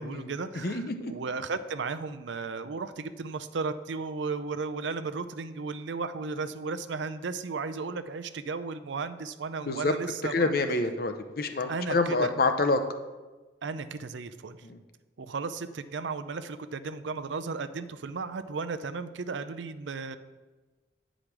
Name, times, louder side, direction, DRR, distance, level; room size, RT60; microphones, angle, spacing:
voice 1, 0.0-10.5 11.7-12.3 13.6-14.6 15.2-20.2, right 4 dB, 80° right, 11 dB, 0.5 m, -35 dB
voice 2, 0.5-1.1 9.6-9.9 10.2-12.8 14.6-14.8, left 3 dB, 55° left, 7 dB, 0.7 m, -27 dB
9.9 x 5.1 x 6.0 m, 1.2 s
head